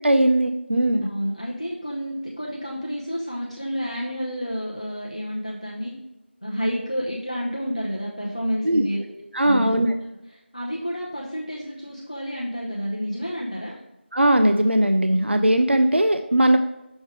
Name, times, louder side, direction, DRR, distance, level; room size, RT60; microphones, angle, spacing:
voice 1, 0.0-1.1 8.6-8.8 9.3-9.9 14.1-16.6, right 1 dB, 65° right, 7 dB, 0.4 m, -19 dB
voice 2, 1.0-5.9 6.4-9.8 10.5-13.8, equal, 35° left, -3 dB, 0.6 m, -30 dB
6.2 x 3.3 x 4.8 m, 0.94 s
figure-of-eight pair, 175°, 7 cm